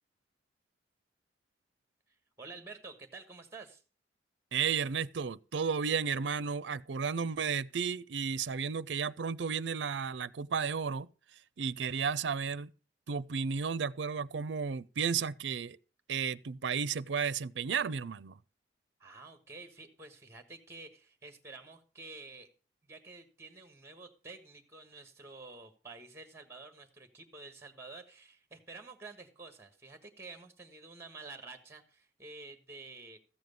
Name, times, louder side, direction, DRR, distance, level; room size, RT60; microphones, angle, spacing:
voice 1, 2.1-3.8 19.0-22.5 22.8-33.2, right 3 dB, 15° right, 1.4 m, -50 dB
voice 2, 4.5-11.1 11.6-12.7 13.1-15.8 16.1-18.4, right 6 dB, 80° right, 0.5 m, -33 dB
14.0 x 7.8 x 5.2 m
head